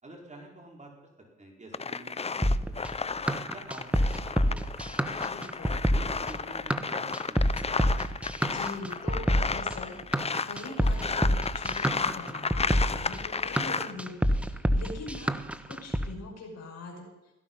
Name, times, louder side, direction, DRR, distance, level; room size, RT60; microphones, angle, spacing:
voice 1, 0.0-0.9 1.4-2.4 2.6-3.1 3.5-4.8 5.1-7.5, right 1 dB, 25° right, -1 dB, 5.0 m, -48 dB
sound 1, 1.7-13.9, left 5 dB, 20° left, 0.6 m, -33 dB
sound 2, 2.4-16.1, equal, 5° right, 1.1 m, -27 dB
voice 2, 5.2-5.8 8.4-10.0 10.4-15.3 15.7-17.1, left 3 dB, 60° left, 0 dB, 6.2 m, -42 dB
17.0 x 14.0 x 5.6 m, 0.98 s
cardioid pair, 90°, 30 cm